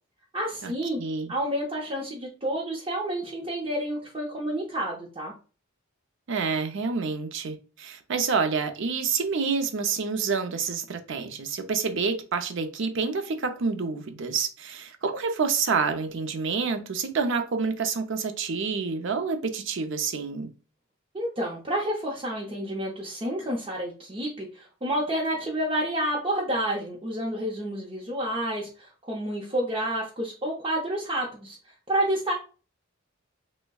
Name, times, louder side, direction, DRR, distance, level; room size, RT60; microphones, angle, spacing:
voice 1, 0.3-1.0 1.3-5.3 21.1-31.6 31.9-32.4, right 1 dB, 25° right, 0.7 m, -29 dB
voice 2, 1.0-1.3 6.3-20.5, right 5 dB, 65° right, 0.6 m, -28 dB
6.1 x 2.2 x 2.3 m
head